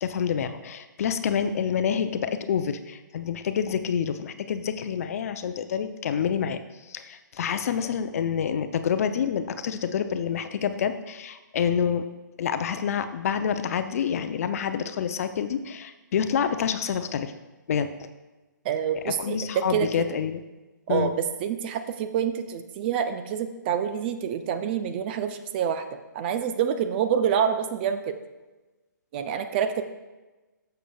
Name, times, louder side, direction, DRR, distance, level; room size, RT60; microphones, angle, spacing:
voice 1, 0.0-12.1 12.4-17.3 17.7-17.9 19.0-20.4 20.9-21.1, left 7 dB, 45° left, 9 dB, 0.6 m, -27 dB
voice 2, 18.6-20.0 20.9-28.1 29.1-29.8, right 8 dB, 30° right, 9 dB, 0.5 m, -27 dB
13.5 x 6.7 x 2.3 m, 1.1 s
hypercardioid pair, 140°, 11 cm